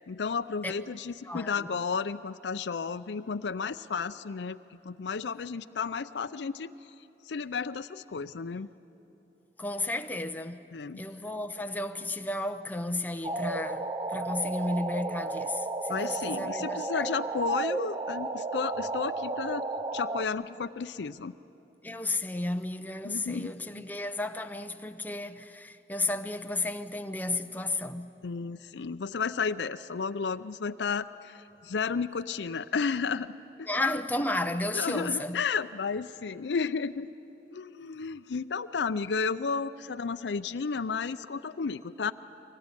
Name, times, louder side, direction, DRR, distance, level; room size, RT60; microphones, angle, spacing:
voice 1, 0.1-4.6 4.8-6.7 7.3-8.7 10.7-11.0 15.9-19.7 19.9-21.3 23.0-23.8 28.2-31.3 31.6-33.3 34.7-37.1 37.5-42.1, left 5 dB, 75° left, 0.5 m, -32 dB
voice 2, 1.2-1.7 9.6-10.6 11.0-17.1 21.8-28.1 33.7-35.4, left 2 dB, 10° left, 0.7 m, -33 dB
sound 1, 13.2-20.3, right 3 dB, 25° right, 0.6 m, -33 dB
23.5 x 19.0 x 9.8 m
head